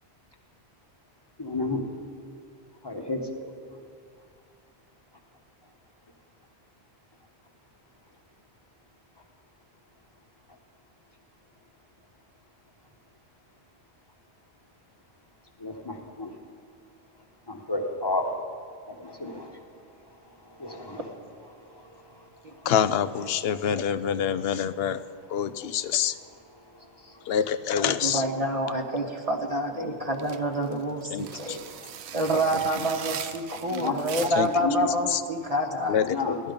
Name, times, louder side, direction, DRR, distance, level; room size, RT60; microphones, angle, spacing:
voice 1, 1.4-1.8 2.8-3.2 15.6-16.3 17.5-18.3 18.9-19.6 20.6-21.1 22.6-22.7 28.2-28.5 29.8-29.9 30.2-30.3 33.6-34.9 35.9-36.4, left 2 dB, 25° left, 3 dB, 1.2 m, -31 dB
voice 2, 22.7-25.0 25.3-26.1 27.3-28.2 31.1-31.6 34.4-34.5 35.1-35.2 35.9-36.4, left 8 dB, 70° left, 13 dB, 0.7 m, -26 dB
voice 3, 27.8-31.6 32.1-36.0, right 1 dB, 35° right, 2 dB, 1.1 m, -28 dB
sound 1, 30.1-34.6, right 9 dB, 75° right, 0.9 m, -39 dB
16.0 x 12.5 x 5.2 m, 2.2 s
omnidirectional pair, 1.1 m